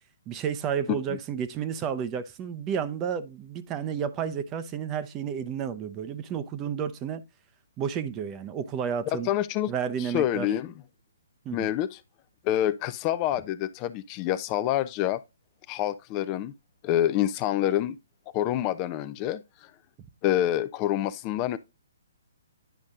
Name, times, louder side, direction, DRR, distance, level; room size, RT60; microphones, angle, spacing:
voice 1, 0.3-7.2 7.8-9.3 9.7-10.5 11.4-11.7, right 7 dB, 25° right, 0.7 m, -31 dB
voice 2, 9.2-9.7 10.0-10.7 11.5-12.0 12.4-15.2 15.7-16.5 16.8-18.0 18.3-19.7 20.2-21.6, left 12 dB, 30° left, 0.4 m, -27 dB
10.0 x 5.2 x 2.4 m
figure-of-eight pair, 135°, 0 cm